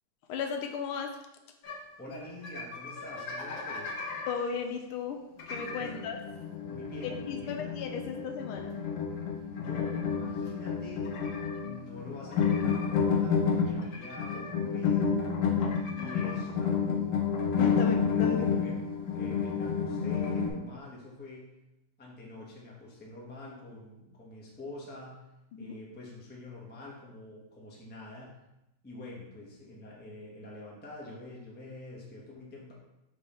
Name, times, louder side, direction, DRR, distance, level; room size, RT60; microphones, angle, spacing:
voice 1, 0.3-1.2 4.3-5.2 5.5-6.2 7.0-8.8 17.6-18.5 25.5-25.8, left 6 dB, 80° left, 4 dB, 1.6 m, -35 dB
sound 1, 1.6-1.8 2.1-2.2 2.4-4.4 5.4-20.5, left 6 dB, 65° left, 1.1 m, -30 dB
voice 2, 2.0-4.0 5.7-6.0 6.6-7.7 9.6-11.1 11.6-15.2 15.9-17.2 17.8-17.9 18.3-21.5 22.0-25.2 25.6-28.4 28.8-32.7, left 2 dB, 10° left, -3 dB, 0.7 m, -46 dB
5.5 x 4.7 x 4.3 m, 0.90 s
omnidirectional pair, 2.4 m